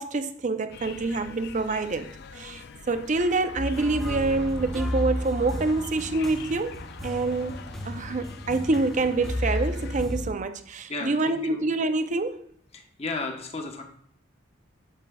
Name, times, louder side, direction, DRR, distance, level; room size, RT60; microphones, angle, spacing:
voice 1, 0.0-7.6 7.8-12.4, right 3 dB, 35° right, 0.5 m, -27 dB
sound 1, 0.7-10.1, left 5 dB, 55° left, 0.5 m, -44 dB
sound 2, 3.6-10.3, equal, ahead, 0.9 m, -33 dB
voice 2, 10.9-11.6 12.7-13.8, left 3 dB, 30° left, 1.0 m, -34 dB
8.9 x 7.1 x 2.3 m
head